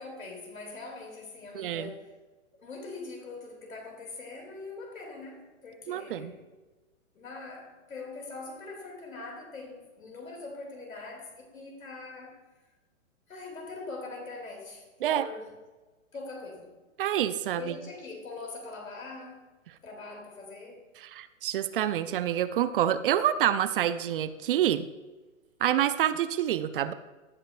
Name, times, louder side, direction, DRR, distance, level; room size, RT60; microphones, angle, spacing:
voice 1, 0.0-2.2 2.5-6.5 7.1-12.4 13.3-15.5 16.1-16.7 17.5-19.5 19.8-21.0, left 3 dB, 90° left, 2 dB, 2.6 m, -42 dB
voice 2, 1.5-1.9 5.9-6.3 15.0-15.3 17.0-17.8 21.0-24.8 25.6-26.9, right 11 dB, 45° right, 13 dB, 0.5 m, -27 dB
17.0 x 5.7 x 2.4 m, 1.2 s
hypercardioid pair, 135°, 40 cm